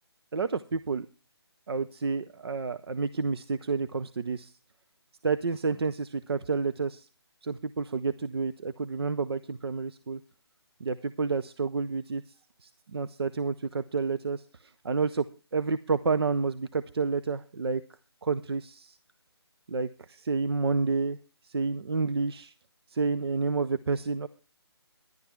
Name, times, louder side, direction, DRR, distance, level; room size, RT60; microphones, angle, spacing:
voice 1, 0.3-1.1 1.7-4.5 5.2-7.1 7.4-10.2 10.8-12.2 12.6-15.3 15.5-17.8 18.2-19.0 19.7-21.2 21.4-22.5 22.9-24.3, right 4 dB, 65° right, 12 dB, 0.6 m, -29 dB
11.5 x 11.0 x 4.5 m, 0.33 s
figure-of-eight pair, 160°, 14 cm